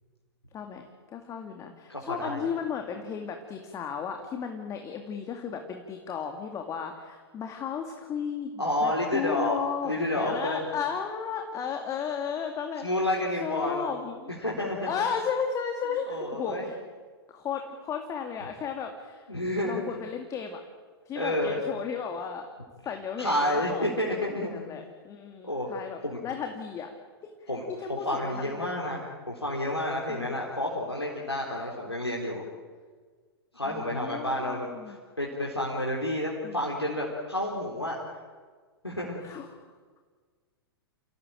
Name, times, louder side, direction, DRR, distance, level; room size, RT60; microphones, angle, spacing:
voice 1, 0.5-0.9 1.1-12.9 13.4-14.3 14.9-16.8 17.3-19.2 19.7-20.6 21.1-22.5 22.9-24.0 24.5-26.9 27.4-28.7 30.1-30.4 31.5-31.7 33.6-35.0 36.4-36.7 39.2-39.5, left 6 dB, 25° left, 4 dB, 2.4 m, -34 dB
voice 2, 1.9-2.5 8.6-9.6 9.8-10.7 12.8-13.8 14.4-14.9 16.1-16.7 19.3-19.9 21.2-21.6 23.2-24.7 25.4-25.7 26.0-26.2 27.5-27.7 28.0-32.4 33.5-38.0 38.8-39.2, left 1 dB, 90° left, -3 dB, 4.2 m, -30 dB
29.0 x 17.5 x 9.1 m, 1.5 s
figure-of-eight pair, 105°, 13 cm